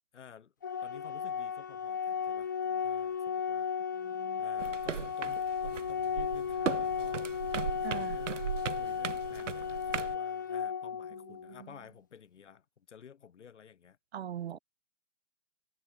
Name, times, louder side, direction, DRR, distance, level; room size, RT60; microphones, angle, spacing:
voice 1, 0.1-0.5 0.8-3.7 4.4-14.0 14.5-14.6, left 7 dB, 65° left, 3.7 m, -54 dB
Organ, 0.6-11.6, left 7 dB, 15° left, 0.4 m, -35 dB
voice 2, 4.0-4.4 7.8-8.2 14.1-14.6, right 10 dB, 55° right, 0.7 m, -40 dB
sound 1, 4.6-10.2, right 8 dB, 70° right, 1.2 m, -38 dB
figure-of-eight pair, 135°, 39 cm